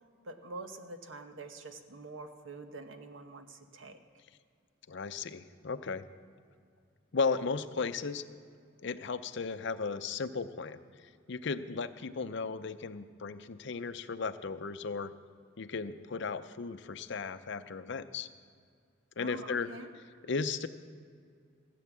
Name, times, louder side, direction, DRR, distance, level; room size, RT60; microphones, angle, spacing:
voice 1, 0.2-4.0 19.2-19.9, right 2 dB, 70° right, 7 dB, 1.1 m, -46 dB
voice 2, 4.9-6.1 7.1-8.3 8.8-15.1 15.6-18.3 19.2-19.7 20.2-20.7, left 4 dB, 65° left, 11 dB, 0.6 m, -35 dB
16.0 x 8.6 x 7.3 m, 2.2 s
head